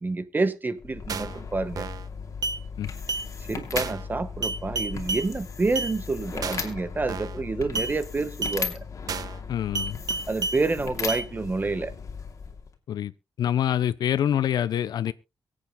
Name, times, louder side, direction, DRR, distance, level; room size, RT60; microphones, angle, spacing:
voice 1, 0.0-1.9 3.5-8.8 10.3-11.9, right 3 dB, 25° right, 1.3 m, -28 dB
sound 1, 0.8-12.7, left 5 dB, 50° left, 2.6 m, -37 dB
sound 2, 1.1-1.4 1.8-2.1 2.4-2.6 3.1-3.3 3.8-4.1 4.4-5.3 5.8-5.9 6.4-6.7 7.1-7.4 7.7-7.9 8.4-8.6 9.1-9.4 9.7-10.6 11.1-11.2, right 4 dB, 65° right, 1.2 m, -30 dB
voice 2, 9.5-10.0 12.9-13.1 13.4-15.1, left 10 dB, 80° left, 0.6 m, -25 dB
23.5 x 8.7 x 2.2 m
cardioid pair, 110°, 7 cm